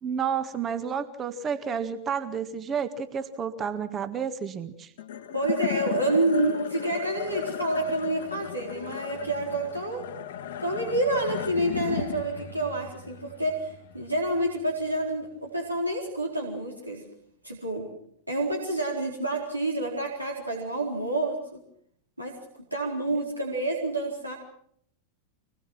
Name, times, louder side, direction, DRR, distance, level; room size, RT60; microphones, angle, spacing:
voice 1, 0.0-4.9, right 7 dB, 25° right, 10 dB, 1.7 m, -31 dB
sound 1, 5.0-15.5, left 9 dB, 55° left, 1.7 m, -36 dB
voice 2, 5.3-10.0 10.6-17.0 17.4-17.9 18.3-21.6 22.2-22.3 22.7-24.3, right 1 dB, 85° right, -1 dB, 4.1 m, -28 dB
25.0 x 21.0 x 6.1 m, 0.67 s
figure-of-eight pair, 90°, 0 cm